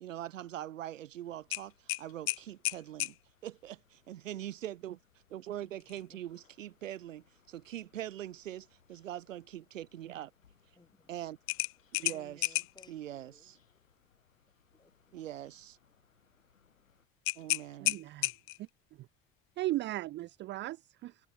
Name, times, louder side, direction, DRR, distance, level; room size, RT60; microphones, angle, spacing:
voice 1, 0.0-3.1 3.4-5.0 5.3-10.3 11.1-11.4 12.0-12.4 12.9-13.6 15.1-15.8 17.4-18.0, right 12 dB, 75° right, 0.9 m, -42 dB
sound 1, 1.2-17.1, left 6 dB, 85° left, 4.4 m, -70 dB
sound 2, 1.5-3.2 5.8-6.0 6.5-6.6 11.5-12.9 17.2-18.7, left 20 dB, 35° left, 0.4 m, -33 dB
voice 2, 6.1-6.4 10.7-11.3 12.1-13.5 14.7-15.3, left 2 dB, 10° left, 5.2 m, -62 dB
voice 3, 17.8-18.3 19.6-21.2, right 16 dB, 30° right, 0.4 m, -36 dB
figure-of-eight pair, 65°, 39 cm